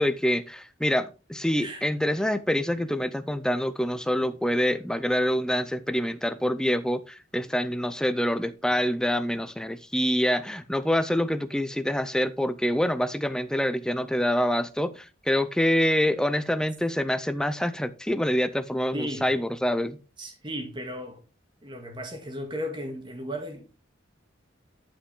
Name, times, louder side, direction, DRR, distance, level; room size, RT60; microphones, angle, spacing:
voice 1, 0.0-20.0, equal, 5° left, 0.6 m, -26 dB
voice 2, 18.9-19.3 20.2-21.2 21.6-23.8, equal, 25° right, 2.3 m, -35 dB
11.5 x 5.7 x 3.8 m
head